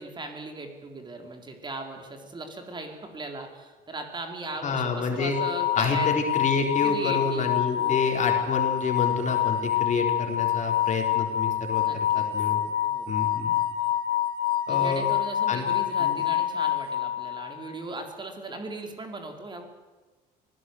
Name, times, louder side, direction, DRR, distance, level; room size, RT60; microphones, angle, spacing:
voice 1, 0.0-6.1 6.8-8.5 11.8-12.3 12.9-13.1 14.7-19.6, right 2 dB, 25° right, 4 dB, 3.7 m, -38 dB
voice 2, 4.6-5.3 5.8-12.6 13.1-13.5 14.7-15.0 15.5-15.7 16.0-16.2, left 4 dB, 45° left, 3 dB, 4.1 m, -28 dB
sound 1, 5.3-17.5, left 11 dB, 75° left, 2.9 m, -26 dB
24.0 x 17.0 x 8.0 m, 1.2 s
cardioid pair, 110°, 17 cm